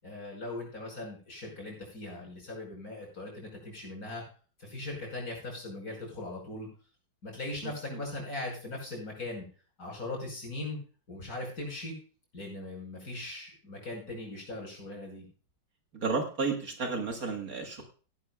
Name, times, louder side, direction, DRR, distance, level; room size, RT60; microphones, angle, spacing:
voice 1, 0.0-4.2 4.6-6.7 7.2-9.5 9.8-10.8 11.1-11.9 12.3-15.3, left 2 dB, 50° left, -1 dB, 6.0 m, -39 dB
voice 2, 7.6-8.0 15.9-17.8, right 4 dB, 50° right, 3 dB, 1.9 m, -32 dB
17.5 x 11.5 x 2.3 m, 0.39 s
omnidirectional pair, 2.0 m